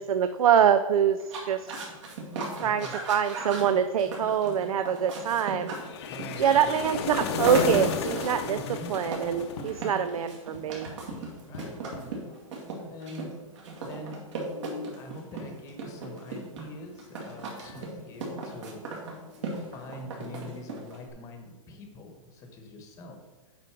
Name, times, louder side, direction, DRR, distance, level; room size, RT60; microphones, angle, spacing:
voice 1, 0.1-1.2 1.4-1.8 2.6-5.7 6.4-8.6 8.9-10.9, right 8 dB, 80° right, 10 dB, 0.5 m, -24 dB
sound 1, 1.2-21.1, right 3 dB, 55° right, 2.1 m, -37 dB
voice 2, 2.6-3.0 6.1-6.7 8.4-9.0 11.4-12.5 12.8-13.3 13.8-14.2 14.9-18.8 19.6-23.2, left 1 dB, 20° left, 4 dB, 1.0 m, -44 dB
sound 2, 5.8-10.1, left 6 dB, 50° left, 0.7 m, -32 dB
sound 3, 9.3-10.2 10.5-12.3 13.1-13.2 13.4-13.5 14.2-15.1 16.8-16.9 17.4-17.9 18.3-18.4 18.9-19.8, left 3 dB, 80° left, 1.2 m, -45 dB
8.1 x 5.3 x 4.5 m, 1.2 s
hypercardioid pair, 165°, 18 cm